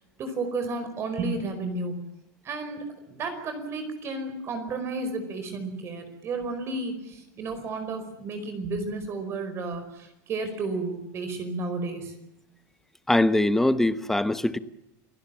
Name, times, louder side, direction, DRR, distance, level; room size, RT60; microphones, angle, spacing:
voice 1, 0.2-2.0 2.4-2.8 3.1-12.1, right 3 dB, 30° right, 4.9 m, -32 dB
voice 2, 13.1-14.6, left 1 dB, 5° left, 0.9 m, -22 dB
29.0 x 19.5 x 7.4 m
supercardioid pair, 165°, 9 cm